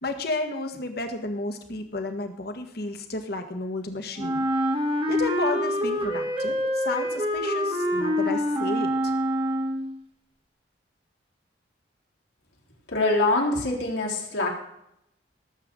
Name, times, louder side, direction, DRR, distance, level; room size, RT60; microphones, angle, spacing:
voice 1, 0.0-4.4 5.1-9.1, left 2 dB, 55° left, 6 dB, 1.7 m, -32 dB
Wind instrument woodwind instrument, 4.2-10.0, equal, 30° right, 1.6 m, -26 dB
voice 2, 12.9-14.5, left 2 dB, 80° left, -3 dB, 3.7 m, -24 dB
18.5 x 8.0 x 3.8 m, 0.79 s
head